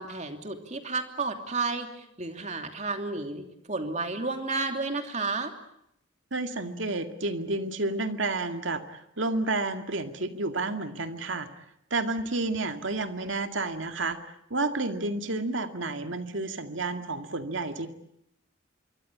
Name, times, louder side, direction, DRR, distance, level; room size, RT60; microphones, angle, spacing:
voice 1, 0.0-5.5, right 3 dB, 35° right, 6 dB, 2.8 m, -32 dB
voice 2, 6.3-11.5 11.9-17.9, right 2 dB, 70° right, 7 dB, 2.2 m, -30 dB
26.0 x 23.5 x 8.6 m, 0.75 s
head